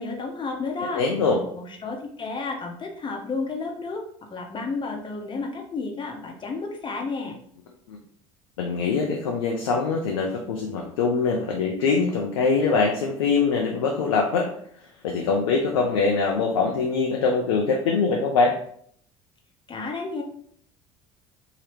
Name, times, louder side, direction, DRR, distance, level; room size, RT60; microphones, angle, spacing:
voice 1, 0.0-1.0 1.5-4.0 4.3-7.4 19.7-20.2, left 3 dB, 30° left, 2 dB, 0.9 m, -31 dB
voice 2, 0.9-1.4 7.9-8.0 8.6-14.5 15.0-18.6, left 4 dB, 75° left, 1 dB, 0.5 m, -23 dB
2.9 x 2.8 x 3.2 m, 0.64 s
hypercardioid pair, 65°, 17 cm